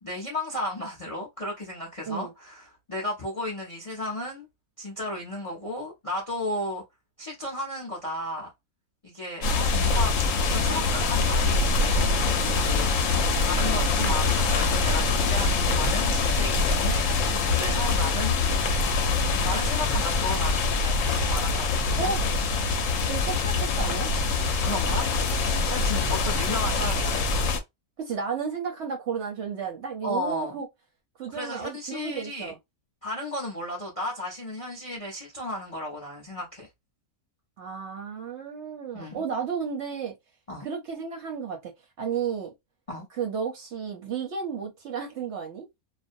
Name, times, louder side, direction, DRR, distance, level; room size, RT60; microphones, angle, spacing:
voice 1, 0.0-4.5 4.8-6.8 7.2-8.5 9.0-12.1 12.6-13.0 13.4-18.4 19.4-22.1 24.6-25.1 25.7-27.2 30.0-30.6 31.3-32.5 33.0-36.7 38.9-39.2 40.5-40.7 42.9-43.1, left 1 dB, 40° left, 0.5 m, -34 dB
sound 1, 9.4-27.6, left 3 dB, 70° left, 0.9 m, -24 dB
voice 2, 22.0-22.3 23.0-24.1 28.0-30.7 31.2-32.6 37.6-40.1 40.6-41.7 42.0-42.5 43.2-45.7, right 6 dB, 60° right, 0.8 m, -32 dB
2.4 x 2.1 x 2.5 m
omnidirectional pair, 1.6 m